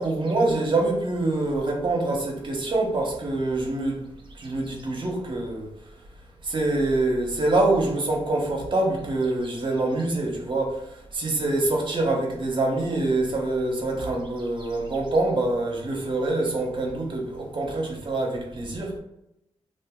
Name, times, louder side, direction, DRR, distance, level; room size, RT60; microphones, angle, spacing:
voice 1, 0.0-4.0 4.3-5.7 6.4-19.0, right 2 dB, 45° right, 0.9 m, -25 dB
2.7 x 2.5 x 3.6 m
cardioid pair, 85°, 11 cm